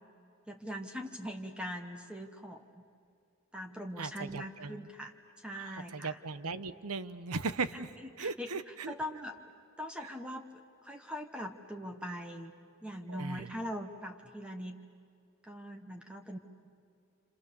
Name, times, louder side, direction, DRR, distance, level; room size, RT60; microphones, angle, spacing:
voice 1, 0.5-2.6 3.5-5.1 5.4-6.2 7.7-7.9 8.2-9.3 9.8-12.5 12.8-14.8 15.4-16.4, equal, 5° right, 4 dB, 1.1 m, -41 dB
voice 2, 4.0-4.9 5.5-7.9 8.2-8.9 10.0-10.1 13.1-13.5, right 4 dB, 85° right, 13 dB, 1.0 m, -38 dB
29.0 x 28.0 x 7.0 m, 2.4 s
head